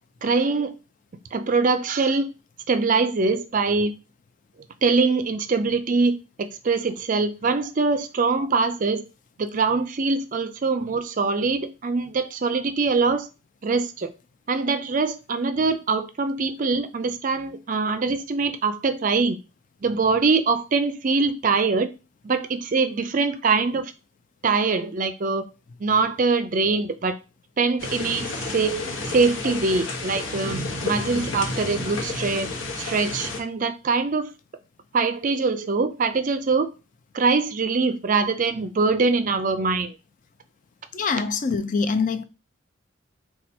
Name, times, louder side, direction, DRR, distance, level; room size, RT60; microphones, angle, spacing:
voice 1, 0.2-0.7 1.3-2.3 2.7-3.9 4.8-9.0 9.4-13.3 13.6-14.1 14.5-19.4 19.8-21.9 22.2-23.9 24.4-25.4 25.8-27.2 27.6-28.8 29.1-32.5 32.8-34.3 34.9-36.7 37.1-39.9, right 4 dB, 40° right, 0.4 m, -23 dB
sound 1, 27.8-33.4, left 2 dB, 65° left, 0.9 m, -31 dB
voice 2, 40.9-42.2, left 5 dB, 40° left, 0.4 m, -24 dB
4.3 x 2.3 x 4.2 m
head